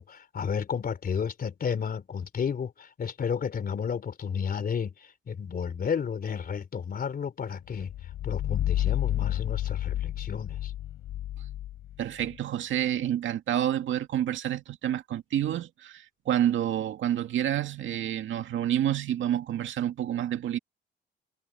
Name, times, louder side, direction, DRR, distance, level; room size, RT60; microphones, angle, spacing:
voice 1, 0.0-7.9 8.2-10.7, left 7 dB, 50° left, 3.5 m, -32 dB
sound 1, 7.8-12.4, left 13 dB, 80° left, 6.5 m, -31 dB
voice 2, 12.0-20.6, right 11 dB, 75° right, 2.3 m, -28 dB
cardioid pair, 90°, 20 cm